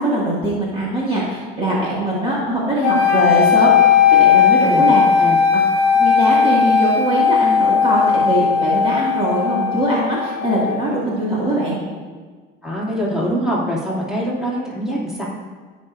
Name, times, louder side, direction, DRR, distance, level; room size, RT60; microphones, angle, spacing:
voice 1, 0.0-3.7 4.1-5.0 5.5-5.6 6.0-11.8, right 1 dB, 25° right, -6 dB, 2.0 m, -21 dB
sound 1, 2.8-10.9, left 7 dB, 55° left, 0.9 m, -16 dB
voice 2, 4.6-5.4 12.6-15.2, equal, 5° right, -7 dB, 2.5 m, -24 dB
15.5 x 5.2 x 2.6 m, 1.5 s
cardioid pair, 115°, 21 cm